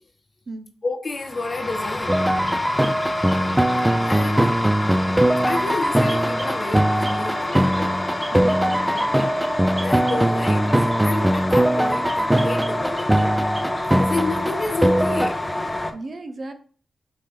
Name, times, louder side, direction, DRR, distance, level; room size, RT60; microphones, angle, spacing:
voice 1, 0.8-2.1 4.0-4.6 5.5-8.0 8.8-9.1 9.8-13.3 14.0-15.4, left 3 dB, 45° left, 1.1 m, -30 dB
sound 1, 1.2-15.9, left 1 dB, 15° left, 0.8 m, -28 dB
sound 2, 2.1-15.3, right 1 dB, 10° right, 0.4 m, -21 dB
sound 3, 2.1-4.0 6.1-6.6 7.0-7.2 7.5-7.9 8.2-11.5 12.1-13.3 13.5-13.9, right 2 dB, 35° right, 0.9 m, -39 dB
voice 2, 8.3-9.4 15.9-16.5, right 2 dB, 55° right, 0.7 m, -36 dB
4.5 x 3.2 x 3.5 m
cardioid pair, 50°, 0 cm